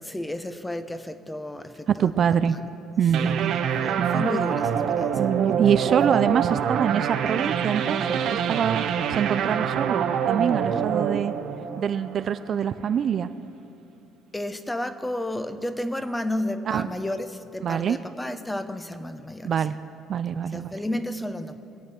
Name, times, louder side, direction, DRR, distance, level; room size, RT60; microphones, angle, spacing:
voice 1, 0.0-2.2 3.2-3.3 3.8-5.6 6.1-6.2 14.3-19.5 20.5-21.6, left 1 dB, 10° left, 10 dB, 0.9 m, -32 dB
voice 2, 1.9-2.6 3.0-3.6 4.0-4.2 5.2-11.3 11.8-13.3 16.7-16.9 17.6-18.0 19.4-19.7 20.1-20.7, right 8 dB, 50° right, 12 dB, 0.5 m, -25 dB
sound 1, 3.1-12.5, right 8 dB, 65° right, 1.0 m, -26 dB
24.5 x 8.6 x 4.5 m, 2.8 s
cardioid pair, 100°, 0 cm